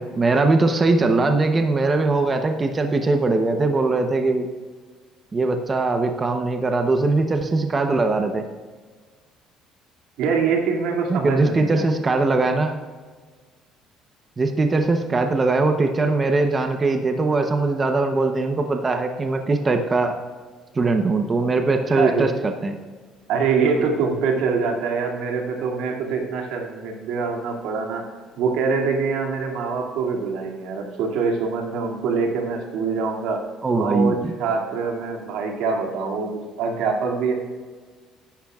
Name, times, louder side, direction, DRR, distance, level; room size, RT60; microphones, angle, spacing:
voice 1, 0.0-4.5 5.3-8.4 11.1-12.8 14.4-20.2 20.7-22.8 33.6-34.3, right 3 dB, 20° right, 5 dB, 0.7 m, -21 dB
voice 2, 10.2-11.9 21.9-22.3 23.3-28.0 28.4-33.4 33.8-37.3, right 5 dB, 85° right, 1 dB, 2.2 m, -24 dB
15.0 x 11.5 x 2.4 m, 1.5 s
cardioid pair, 145°, 0 cm